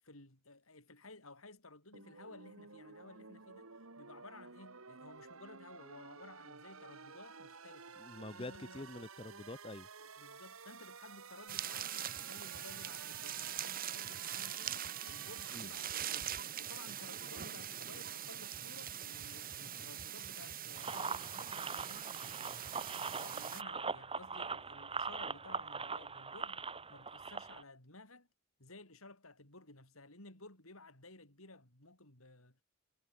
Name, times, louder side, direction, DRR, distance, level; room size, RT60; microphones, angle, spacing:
voice 1, 0.0-3.7 4.0-8.0 8.3-8.9 10.2-22.8 23.2-26.6 26.9-28.3 28.6-32.6, left 2 dB, 80° left, 7.2 m, -56 dB
sound 1, 1.9-16.1, right 5 dB, 80° right, 2.4 m, -53 dB
voice 2, 8.0-9.9 15.5-15.7, left 2 dB, 25° left, 0.9 m, -46 dB
sound 2, 11.5-23.6, right 10 dB, 45° right, 2.1 m, -43 dB
sound 3, 20.7-27.6, right 5 dB, 25° right, 2.8 m, -41 dB
head